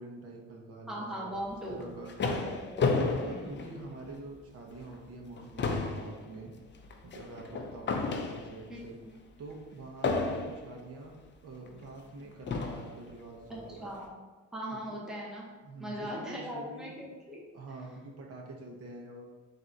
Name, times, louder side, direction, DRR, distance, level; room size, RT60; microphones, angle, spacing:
voice 1, 0.0-1.4 1.7-2.1 3.2-6.5 7.0-9.0 9.4-11.2 11.4-13.9 14.7-14.8 15.6-16.9 17.5-19.3, right 2 dB, 55° right, 0 dB, 0.9 m, -46 dB
voice 2, 0.9-1.9 2.2-2.8 3.3-3.6 8.7-9.1 13.5-14.1 14.5-15.4 15.8-17.4, equal, ahead, -5 dB, 1.0 m, -39 dB
sound 1, 1.6-4.3 4.8-4.9 5.2-8.8 10.0-10.8 11.7-11.8 12.5-13.0, left 4 dB, 40° left, 0.5 m, -32 dB
3.7 x 2.7 x 4.5 m, 1.3 s
cardioid pair, 90°, 30 cm